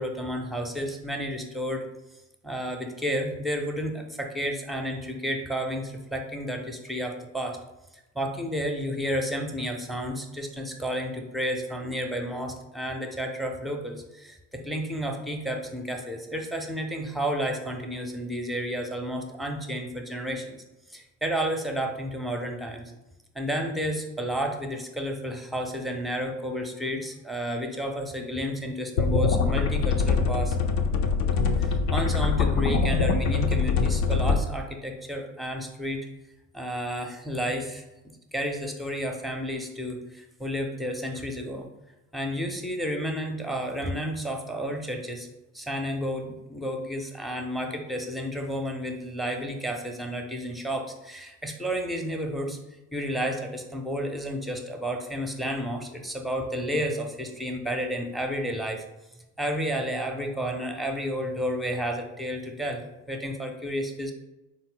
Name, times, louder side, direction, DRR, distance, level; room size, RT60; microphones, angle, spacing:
voice 1, 0.0-1.9 2.4-7.6 8.1-20.6 20.9-22.9 23.3-30.6 31.6-36.1 36.5-37.8 38.3-41.7 42.1-45.3 45.5-52.6 52.9-58.8 59.4-64.1, equal, ahead, 3 dB, 0.5 m, -31 dB
sound 1, 29.0-34.4, left 4 dB, 60° left, 0.6 m, -23 dB
3.8 x 2.2 x 3.8 m, 0.97 s
hypercardioid pair, 60°, 40 cm